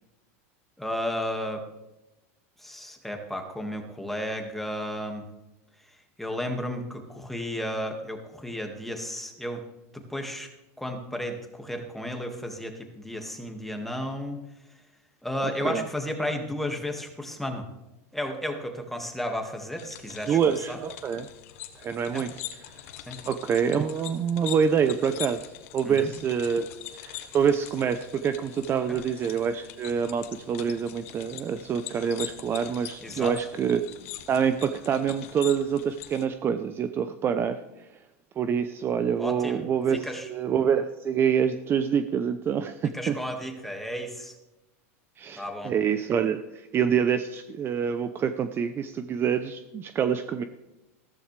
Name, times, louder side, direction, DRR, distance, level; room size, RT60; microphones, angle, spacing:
voice 1, 0.8-1.6 2.6-5.2 6.2-9.6 9.9-10.5 10.8-14.4 15.2-17.7 18.1-20.4 20.7-20.8 22.1-22.2 23.1-23.2 25.9-26.1 28.9-29.0 33.0-33.3 39.2-39.6 40.0-40.3 42.9-44.3 45.4-45.7, equal, 5° left, 3 dB, 2.0 m, -33 dB
voice 2, 15.4-15.8 20.3-21.3 21.7-22.3 22.6-22.8 23.3-26.7 26.9-33.9 34.3-38.0 38.4-43.2 45.2-50.4, right 7 dB, 30° right, 10 dB, 0.7 m, -26 dB
sound 1, 19.8-36.2, left 12 dB, 70° left, 1.4 m, -43 dB
15.0 x 14.0 x 3.4 m, 0.97 s
supercardioid pair, 125°, 8 cm